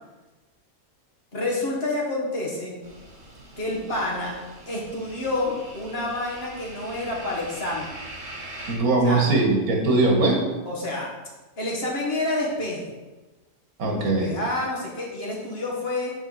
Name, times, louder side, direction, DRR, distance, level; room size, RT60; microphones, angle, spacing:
voice 1, 1.3-2.8 3.6-4.3 4.7-7.9 9.0-9.3 10.7-11.1 11.6-12.9 14.0-16.1, left 2 dB, 45° left, -3 dB, 1.6 m, -28 dB
sound 1, 2.8-8.8, right 1 dB, 60° right, 1.6 m, -41 dB
voice 2, 8.7-10.4 13.8-14.3, right 2 dB, 85° right, 1 dB, 1.7 m, -21 dB
7.1 x 5.3 x 3.9 m, 1.2 s
omnidirectional pair, 1.5 m